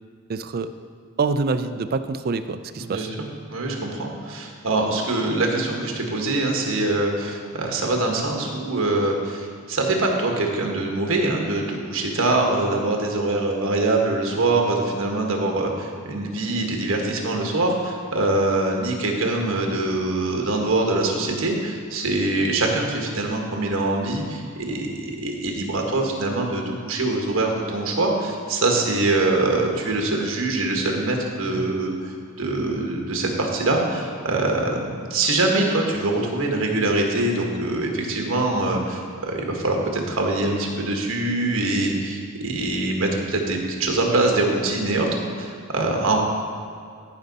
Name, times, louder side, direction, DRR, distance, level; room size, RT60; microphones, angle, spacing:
voice 1, 0.3-0.7 1.2-3.1 31.5-31.7, right 4 dB, 45° right, 11 dB, 0.4 m, -26 dB
voice 2, 2.7-3.1 3.5-46.2, right 2 dB, 60° right, 1 dB, 1.4 m, -24 dB
14.0 x 5.4 x 4.0 m, 2.2 s
head